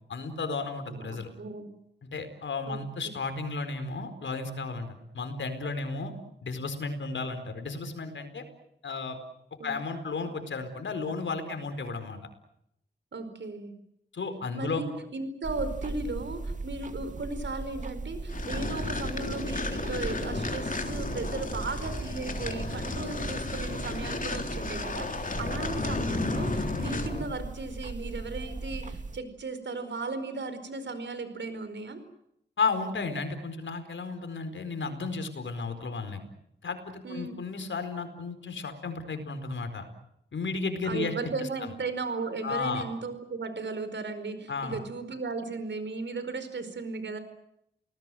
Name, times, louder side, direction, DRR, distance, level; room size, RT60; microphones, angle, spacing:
voice 1, 0.1-1.3 2.0-4.9 5.1-6.1 6.4-8.4 8.8-9.2 9.6-12.2 14.1-14.8 32.6-36.2 36.6-39.9 40.3-41.1 42.4-42.8 44.5-44.8, left 4 dB, 75° left, 8 dB, 4.6 m, -33 dB
voice 2, 0.9-1.7 2.7-3.2 9.6-9.8 13.1-13.7 14.5-32.0 37.0-37.4 40.8-47.2, right 3 dB, 70° right, 10 dB, 4.8 m, -36 dB
sound 1, 15.4-29.2, right 3 dB, 40° right, 2.4 m, -38 dB
sound 2, 18.3-27.3, left 3 dB, 45° left, 3.5 m, -33 dB
29.5 x 19.5 x 7.8 m, 0.78 s
cardioid pair, 45°, 20 cm